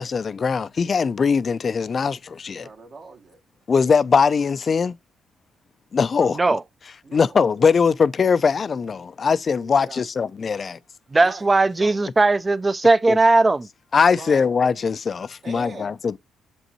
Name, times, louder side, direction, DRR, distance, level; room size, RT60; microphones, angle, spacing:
voice 1, 0.0-2.7 3.7-5.0 5.9-6.4 7.1-10.8 13.1-13.2 13.9-16.2, left 5 dB, 40° left, 0.4 m, -21 dB
voice 2, 2.6-3.4 6.1-6.5 7.0-7.4 9.6-10.0 11.2-11.5 11.8-12.0 14.1-14.5 15.4-16.0, right 3 dB, 50° right, 1.2 m, -41 dB
voice 3, 11.1-13.7, right 3 dB, 25° right, 0.5 m, -18 dB
7.0 x 5.4 x 2.9 m
cardioid pair, 90°, 0 cm